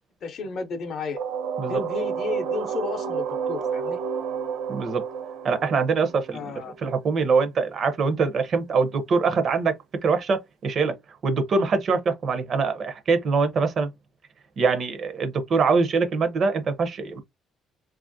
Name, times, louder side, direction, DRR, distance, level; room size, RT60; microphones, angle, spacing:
voice 1, 0.2-1.2 1.7-4.0 6.3-6.7, left 4 dB, 50° left, 0.6 m, -32 dB
sound 1, 1.2-6.9, right 6 dB, 90° right, 0.5 m, -30 dB
voice 2, 4.7-5.0 5.4-9.7 10.0-11.0 11.2-13.9 14.6-17.2, right 4 dB, 40° right, 0.6 m, -23 dB
2.9 x 2.4 x 2.5 m
cardioid pair, 150°, 0 cm